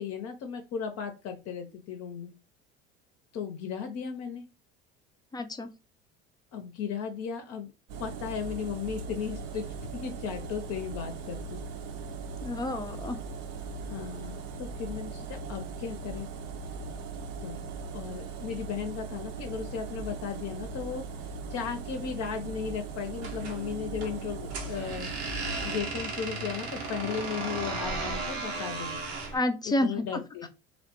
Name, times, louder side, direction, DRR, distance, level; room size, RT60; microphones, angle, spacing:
voice 1, 0.0-2.3 3.3-4.4 6.5-7.7 8.0-11.6 13.8-16.3 17.4-17.7 17.9-21.0 21.5-29.0 29.6-30.5, left 7 dB, 50° left, 5 dB, 0.6 m, -36 dB
voice 2, 5.3-5.7 12.4-13.2 29.3-29.9, left 1 dB, 15° left, 8 dB, 0.4 m, -29 dB
sound 1, 7.9-25.8, right 4 dB, 60° right, 0.6 m, -39 dB
sound 2, 23.2-29.4, right 3 dB, 85° right, 0.8 m, -35 dB
3.0 x 2.0 x 2.9 m, 0.28 s
hypercardioid pair, 75°, 32 cm